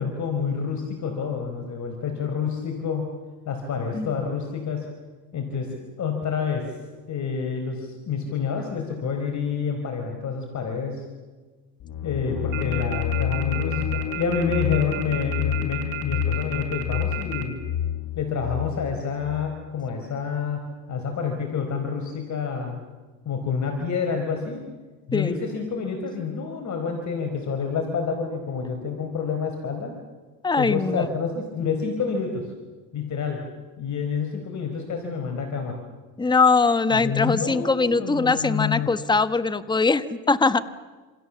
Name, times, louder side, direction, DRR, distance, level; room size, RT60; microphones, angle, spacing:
voice 1, 0.0-3.1 3.5-4.9 5.3-6.8 7.1-11.0 12.0-17.6 18.2-22.8 23.2-24.6 25.1-30.0 30.6-32.5 32.9-33.4 33.8-35.8 36.9-38.9, left 6 dB, 40° left, 4 dB, 4.5 m, -28 dB
sound 1, 11.8-19.5, left 10 dB, 60° left, 1.9 m, -29 dB
sound 2, 12.5-17.4, right 15 dB, 90° right, 3.9 m, -32 dB
voice 2, 30.4-31.1 36.2-40.6, left 4 dB, 10° left, 12 dB, 1.2 m, -21 dB
27.5 x 27.5 x 7.2 m, 1.3 s
supercardioid pair, 105°, 42 cm